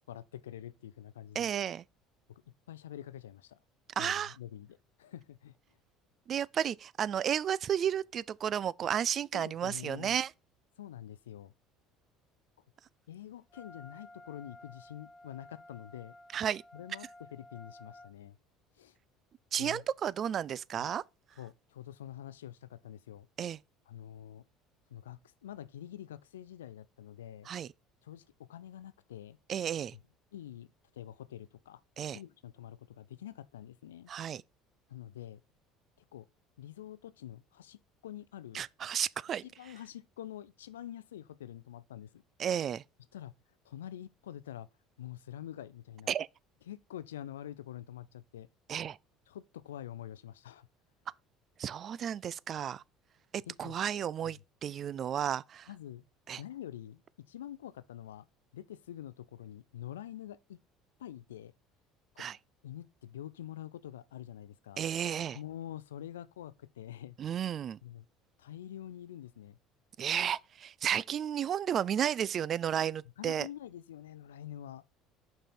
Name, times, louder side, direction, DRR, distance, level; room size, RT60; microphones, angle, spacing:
voice 1, 0.1-1.5 2.3-3.6 4.0-5.6 9.3-10.2 10.8-11.5 13.1-16.2 16.7-18.4 18.8-19.0 19.6-19.8 20.8-20.9 21.4-23.3 23.9-24.5 24.9-27.5 28.0-29.4 29.9-30.0 30.3-31.8 32.1-34.1 34.9-35.4 36.1-36.3 36.6-38.6 39.4-42.2 43.1-43.3 43.6-44.7 45.0-46.1 46.7-48.5 49.3-50.7 53.5-53.7 54.2-54.4 55.7-56.1 56.4-58.3 58.5-60.6 61.0-61.5 62.1-62.3 62.6-64.9 65.3-67.2 67.8-68.1 68.4-69.6 73.2-74.8, left 11 dB, 90° left, 0.4 m, -46 dB
voice 2, 1.4-1.8 4.0-4.3 6.3-10.3 16.3-16.6 19.5-21.0 23.4-23.6 27.5-27.7 29.5-30.0 32.0-32.2 34.1-34.4 38.5-39.4 42.4-42.8 46.1-46.3 48.7-49.0 51.6-52.8 53.3-55.7 56.3-56.4 62.2-62.4 64.8-65.4 67.2-67.8 70.0-73.5, right 9 dB, 45° right, 0.3 m, -33 dB
Wind instrument woodwind instrument, 13.5-18.1, left 1 dB, 30° left, 0.8 m, -54 dB
5.7 x 5.4 x 4.3 m
hypercardioid pair, 70°, 0 cm